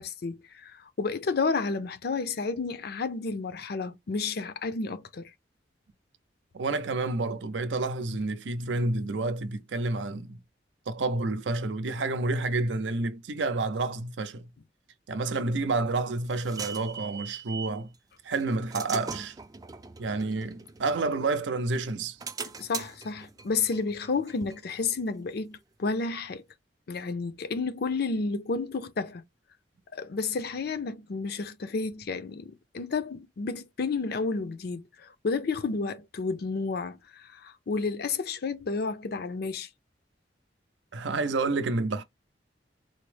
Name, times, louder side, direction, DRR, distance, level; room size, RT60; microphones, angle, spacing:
voice 1, 0.0-5.3 22.6-26.4 26.9-29.2 29.9-39.7, left 4 dB, 60° left, 0.5 m, -31 dB
voice 2, 6.5-10.4 10.9-14.4 15.1-17.9 18.2-19.4 20.0-22.2 40.9-42.0, right 3 dB, 80° right, 0.6 m, -29 dB
sound 1, 15.6-17.8 18.3-21.4 21.9-25.3, right 6 dB, 20° right, 0.3 m, -41 dB
4.0 x 2.0 x 3.2 m
head